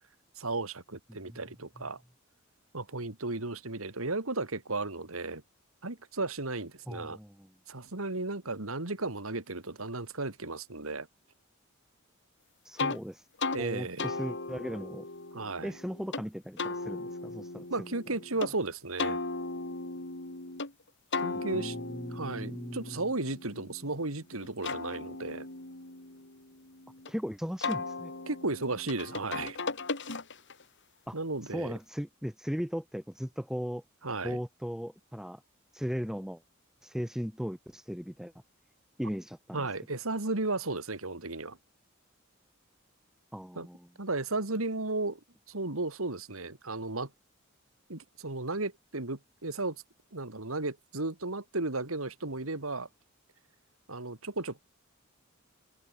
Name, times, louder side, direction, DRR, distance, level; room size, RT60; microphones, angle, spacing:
voice 1, 0.4-2.0 2.7-5.4 5.8-7.2 7.7-11.1 13.5-14.1 15.3-15.7 17.7-19.2 21.2-21.8 22.1-25.5 28.3-29.6 31.1-31.7 34.0-34.4 39.5-41.6 43.6-43.7 44.0-45.2 45.5-47.1 47.9-49.8 50.1-52.9 53.9-54.6, right 2 dB, 90° right, 2.8 m, -34 dB
voice 2, 6.9-7.5 12.6-13.3 13.6-15.1 15.6-18.0 21.3-23.0 27.1-28.1 31.1-31.2 31.4-33.8 34.2-35.4 35.7-36.4 36.8-38.3 39.0-39.7 43.3-43.9, equal, ahead, 2.0 m, -37 dB
sound 1, 12.8-13.0 13.4-13.6 14.0-16.2 16.6-18.5 19.0-20.7 21.1-24.0 24.4-27.1 27.6-30.6, left 3 dB, 60° left, 3.9 m, -37 dB
head